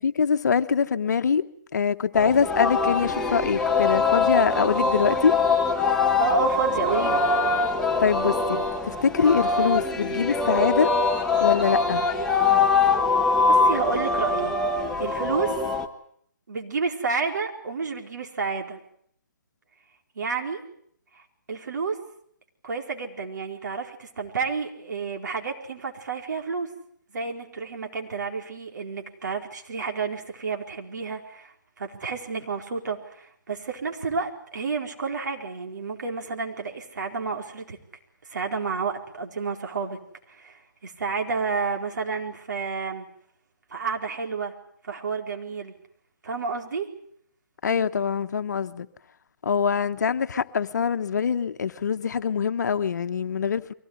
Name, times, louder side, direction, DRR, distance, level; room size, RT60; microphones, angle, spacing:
voice 1, 0.0-1.5 1.7-5.4 8.0-10.9 11.4-12.0 47.6-48.9 49.4-53.7, left 6 dB, 60° left, 1.2 m, -24 dB
Singing, 2.1-15.9, left 4 dB, 5° left, 1.4 m, -23 dB
voice 2, 6.2-7.2 13.5-14.6 15.0-15.5 16.5-18.8 20.1-20.6 21.1-22.0 22.6-26.7 27.1-37.8 38.3-40.0 40.3-43.1 43.7-44.5 44.8-45.7 46.2-46.9, right 5 dB, 65° right, 4.5 m, -30 dB
23.5 x 17.5 x 9.6 m
hypercardioid pair, 150°, 10 cm